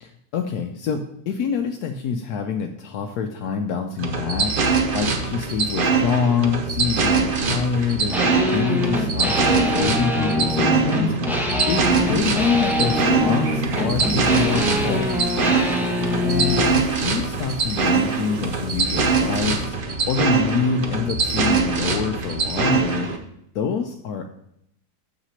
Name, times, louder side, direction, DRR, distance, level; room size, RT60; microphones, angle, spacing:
voice 1, 0.0-4.5 4.9-11.1 11.7-15.1 16.2-19.7 20.1-23.1 23.5-24.2, left 6 dB, 80° left, 4 dB, 1.1 m, -26 dB
sound 1, 4.0-23.2, right 4 dB, 45° right, 0.8 m, -23 dB
sound 2, 8.1-16.8, left 1 dB, ahead, 0.9 m, -24 dB
sound 3, 11.7-19.7, right 3 dB, 65° right, 1.4 m, -41 dB
6.7 x 5.9 x 5.6 m, 0.74 s
omnidirectional pair, 1.7 m